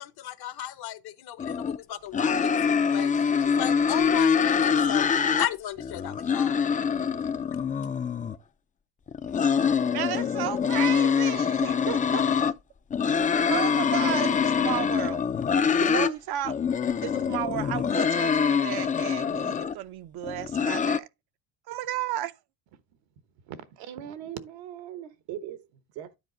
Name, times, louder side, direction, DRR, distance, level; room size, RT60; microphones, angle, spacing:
voice 1, 0.0-5.1 5.4-6.6, left 12 dB, 55° left, 0.9 m, -35 dB
sound 1, 1.4-1.8 2.1-5.5 5.8-8.4 9.1-12.5 12.9-16.1 16.4-19.7 20.2-21.0, left 6 dB, 20° left, 0.4 m, -25 dB
voice 2, 9.9-12.5 13.5-15.2 15.8-16.6 17.0-21.1 21.7-22.3, right 13 dB, 55° right, 0.6 m, -33 dB
voice 3, 23.4-26.2, right 10 dB, 70° right, 1.1 m, -40 dB
9.9 x 4.1 x 3.9 m
supercardioid pair, 90°, 45 cm